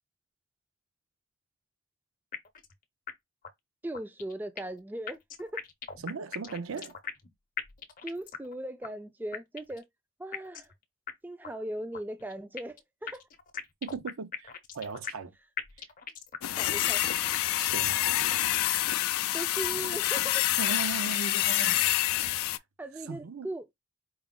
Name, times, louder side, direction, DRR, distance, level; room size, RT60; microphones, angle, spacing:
sound 1, 2.3-2.7 3.1-3.2 3.4-3.5 3.9-4.8 5.1-7.3 7.6-8.5 8.8-8.9 9.3-9.8 10.3-10.7 11.1-11.2 11.4-11.5 11.9-12.8 13.1-15.3 15.6-16.5 16.8-16.9 17.3-17.8, left 7 dB, 40° left, 0.6 m, -39 dB
voice 1, 3.8-5.6 8.0-9.9 10.2-10.7 11.2-13.2 16.6-17.0 19.3-20.5 22.8-23.7, right 1 dB, 10° right, 0.3 m, -38 dB
voice 2, 6.0-7.0 13.8-15.3 17.6-18.0 20.4-22.5 23.1-23.5, right 4 dB, 80° right, 0.5 m, -38 dB
sound 2, 16.4-22.6, left 14 dB, 85° left, 0.3 m, -27 dB
4.6 x 2.0 x 3.7 m
head